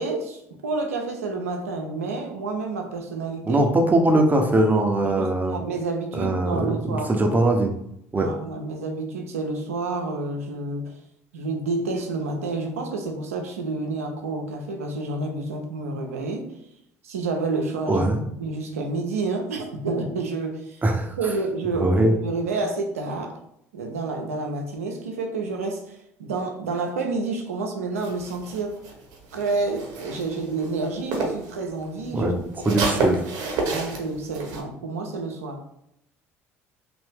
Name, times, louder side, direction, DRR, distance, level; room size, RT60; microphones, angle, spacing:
voice 1, 0.0-3.6 5.0-7.1 8.1-10.9 11.3-16.5 17.0-18.1 18.4-20.8 21.2-23.4 23.7-28.8 29.3-32.3 32.6-33.1 33.6-35.6, right 3 dB, 90° right, 3 dB, 0.6 m, -29 dB
voice 2, 3.5-5.6 6.1-7.7 8.1-8.3 17.9-18.2 20.8-21.1 21.7-22.2 32.1-32.3 32.6-33.2, right 1 dB, 25° right, 3 dB, 0.7 m, -21 dB
sound 1, 28.0-31.5 31.8-34.6, right 3 dB, 65° right, 0.9 m, -30 dB
2.9 x 2.5 x 3.5 m, 0.76 s
hypercardioid pair, 65°, 8 cm